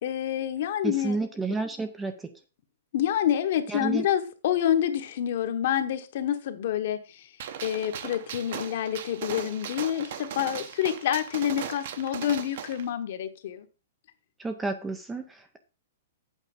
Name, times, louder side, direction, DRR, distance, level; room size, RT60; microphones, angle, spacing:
voice 1, 0.0-1.2 2.9-7.3 7.6-13.6, left 10 dB, 45° left, 9 dB, 1.1 m, -28 dB
voice 2, 0.8-2.3 3.7-4.1 14.4-15.6, right 3 dB, 5° right, 8 dB, 0.5 m, -31 dB
Gunshot gunfire, 7.4-12.8, right 8 dB, 45° right, 0.9 m, -38 dB
8.3 x 4.8 x 7.0 m, 0.33 s
hypercardioid pair, 175°, 0 cm